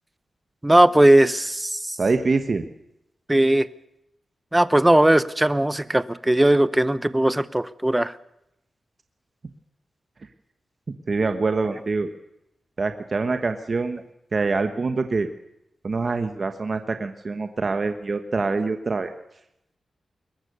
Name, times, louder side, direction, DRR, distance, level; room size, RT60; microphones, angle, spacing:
voice 1, 0.6-2.0 3.3-3.7 4.5-8.1, right 1 dB, 10° right, 15 dB, 0.8 m, -18 dB
voice 2, 2.0-2.7 11.1-12.1 12.8-14.0 14.3-15.3 15.8-19.1, right 3 dB, 40° right, 7 dB, 1.2 m, -25 dB
22.5 x 19.5 x 6.7 m, 0.83 s
wide cardioid pair, 130°, 0 cm